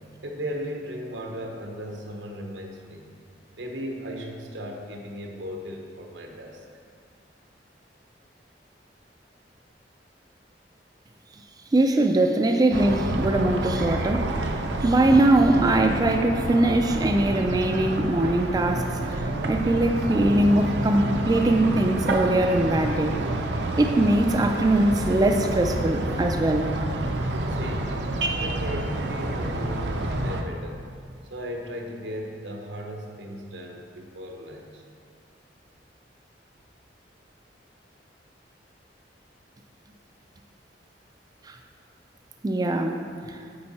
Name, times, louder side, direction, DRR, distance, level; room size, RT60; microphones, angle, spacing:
voice 1, 0.2-3.1 3.6-6.6 27.5-28.0 28.4-30.9 31.3-34.8, equal, 85° right, 2 dB, 1.0 m, -36 dB
voice 2, 11.7-14.3 14.8-19.2 19.5-23.2 23.8-26.7 41.4-41.6 42.4-43.0 43.3-43.4, right 1 dB, 20° right, 4 dB, 0.3 m, -21 dB
sound 1, 12.7-30.4, right 2 dB, 70° right, 0.6 m, -28 dB
8.7 x 4.7 x 4.2 m, 2.2 s
head